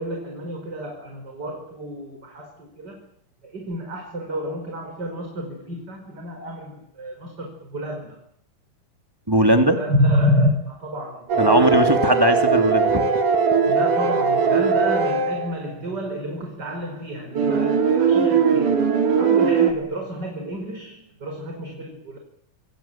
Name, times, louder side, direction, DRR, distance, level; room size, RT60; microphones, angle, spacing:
voice 1, 0.0-3.1 3.4-8.3 9.4-12.0 13.0-13.2 13.6-18.9 19.2-22.2, equal, 25° right, 4 dB, 5.7 m, -29 dB
voice 2, 9.3-9.8 11.4-13.0, equal, 5° right, 6 dB, 2.7 m, -19 dB
sound 1, 11.3-15.5 17.3-19.7, right 5 dB, 55° right, 5.0 m, -19 dB
28.0 x 21.5 x 9.1 m, 0.64 s
omnidirectional pair, 4.2 m